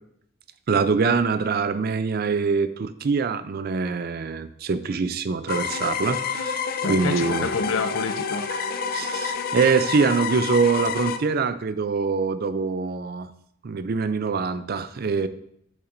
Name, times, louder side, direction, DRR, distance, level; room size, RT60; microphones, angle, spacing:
voice 1, 0.7-6.6 6.9-7.5 8.5-13.3 13.6-15.3, right 4 dB, 50° right, 13 dB, 0.4 m, -24 dB
sound 1, 5.5-11.2, left 6 dB, 45° left, 0.5 m, -28 dB
voice 2, 6.8-8.4, left 4 dB, 85° left, 8 dB, 0.7 m, -28 dB
8.2 x 7.1 x 2.6 m, 0.71 s
head